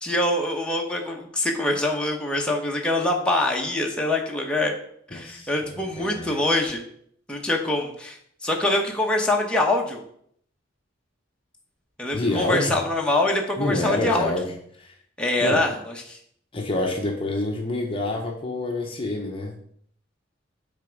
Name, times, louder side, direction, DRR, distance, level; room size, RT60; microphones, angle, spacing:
voice 1, 0.0-4.7 5.1-6.8 7.3-8.2 8.4-10.0 12.0-14.3 15.2-16.2, left 2 dB, 5° left, -1 dB, 0.9 m, -24 dB
voice 2, 5.1-6.4 12.1-12.8 13.6-14.5 14.8-14.9 15.4-15.6 16.5-19.6, left 2 dB, 30° left, 1 dB, 0.9 m, -27 dB
8.9 x 3.5 x 5.1 m, 0.66 s
head